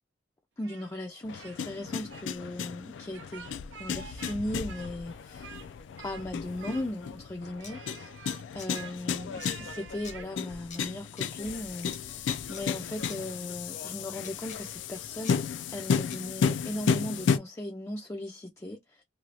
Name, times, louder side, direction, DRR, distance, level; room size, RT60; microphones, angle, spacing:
voice 1, 0.6-3.5 3.8-5.6 6.0-8.1 8.5-19.0, left 1 dB, 15° left, 0.4 m, -38 dB
Speech, 0.6-1.6 1.9-2.2 3.1-4.4 4.7-5.7 6.0-6.3 6.6-7.2 7.6-10.3, right 7 dB, 85° right, 0.4 m, -48 dB
sound 1, 1.2-17.4, left 6 dB, 90° left, 0.4 m, -33 dB
sound 2, 7.6-7.7 8.6-8.7 9.4-9.5 10.0-10.2 10.7-10.8 11.2-11.3 11.9-12.0 12.5-12.6 13.1-13.2 14.2-14.6 15.2-15.4 16.1-16.2 16.9-17.0, left 7 dB, 40° left, 0.7 m, -45 dB
3.0 x 2.3 x 2.7 m
head